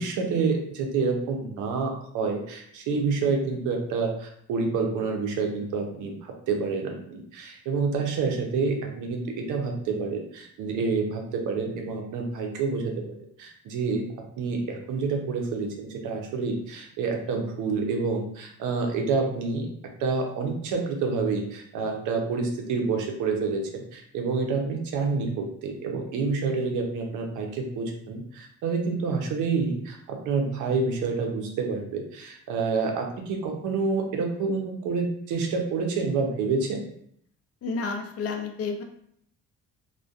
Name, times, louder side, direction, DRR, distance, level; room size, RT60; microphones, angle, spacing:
voice 1, 0.0-14.1 14.4-19.7 20.0-36.8, right 4 dB, 80° right, 2 dB, 0.6 m, -28 dB
voice 2, 37.6-38.8, left 4 dB, 50° left, 4 dB, 0.5 m, -30 dB
2.5 x 2.1 x 2.3 m, 0.68 s
cardioid pair, 90°, 30 cm